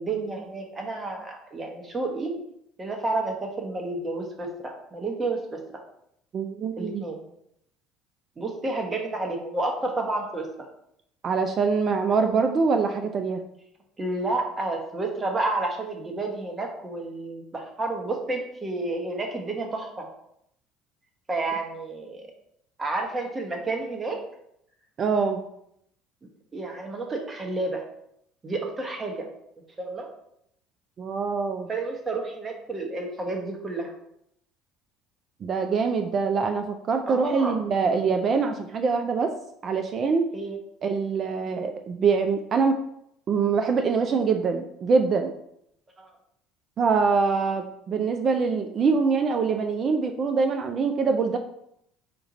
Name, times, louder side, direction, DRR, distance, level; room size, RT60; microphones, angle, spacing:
voice 1, 0.0-2.3 2.8-5.8 6.8-7.2 8.4-10.5 14.0-20.1 21.3-22.2 22.8-24.2 26.5-27.8 28.4-29.3 29.8-30.1 31.7-33.9 37.1-37.6 40.3-40.6 46.0-46.1, right 2 dB, 30° right, 2 dB, 1.0 m, -30 dB
voice 2, 6.3-7.0 11.2-13.4 25.0-25.4 31.0-31.7 35.4-39.3 39.6-40.3 40.8-42.8 43.3-45.3 46.8-51.4, right 5 dB, 45° right, 6 dB, 0.4 m, -24 dB
4.5 x 2.4 x 4.0 m, 0.75 s
hypercardioid pair, 70°, 0 cm